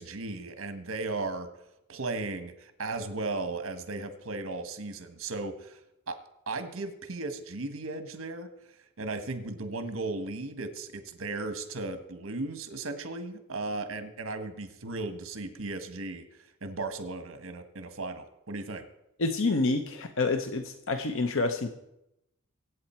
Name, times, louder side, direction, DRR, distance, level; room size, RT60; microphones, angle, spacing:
voice 1, 0.0-1.5 1.9-5.8 6.1-6.2 6.5-18.8, right 3 dB, 70° right, 9 dB, 1.4 m, -36 dB
voice 2, 19.2-21.7, left 3 dB, 65° left, 7 dB, 0.9 m, -28 dB
23.0 x 8.6 x 4.4 m, 0.86 s
head